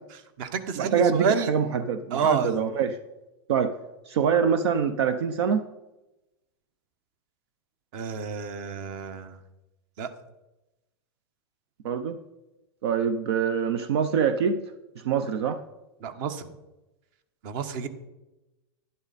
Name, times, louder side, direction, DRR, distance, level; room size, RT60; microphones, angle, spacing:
voice 1, 0.1-1.5 2.1-2.6 7.9-9.4 10.0-10.1 16.0-16.5 17.4-17.9, right 6 dB, 50° right, 10 dB, 1.3 m, -29 dB
voice 2, 0.8-3.0 3.5-3.7 4.1-5.7 11.8-12.2 12.8-14.6 15.0-15.6, right 7 dB, 75° right, 11 dB, 0.8 m, -24 dB
11.5 x 11.0 x 4.2 m, 0.99 s
hypercardioid pair, 130°, 14 cm